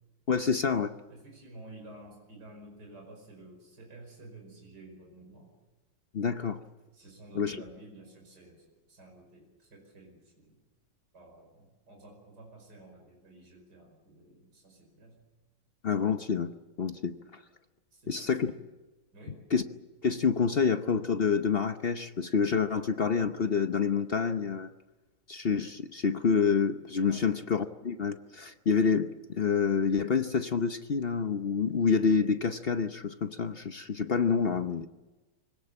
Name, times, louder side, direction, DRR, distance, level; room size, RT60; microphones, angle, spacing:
voice 1, 0.3-0.9 6.1-6.6 7.3-7.6 15.8-16.5 16.8-17.4 18.1-18.5 19.5-19.6 20.0-24.7 25.3-34.9, left 5 dB, 50° left, 9 dB, 0.7 m, -27 dB
voice 2, 1.1-5.5 6.9-10.6 11.1-15.2 17.9-18.6 19.1-19.4 27.1-27.3, right 2 dB, 65° right, 1 dB, 5.9 m, -52 dB
25.0 x 17.5 x 8.8 m, 1.2 s
omnidirectional pair, 1.9 m